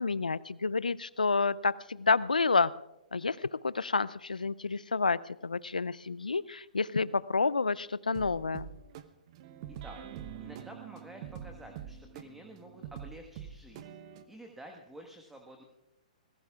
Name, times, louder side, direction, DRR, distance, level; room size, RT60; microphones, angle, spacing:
voice 1, 0.0-2.7 3.1-8.7, left 4 dB, 85° left, 20 dB, 0.5 m, -29 dB
sound 1, 8.1-14.2, right 9 dB, 45° right, 1.0 m, -45 dB
voice 2, 10.4-14.0 14.3-15.6, right 1 dB, 5° right, 2 dB, 1.5 m, -50 dB
25.5 x 19.5 x 2.4 m, 0.88 s
figure-of-eight pair, 120°, 4 cm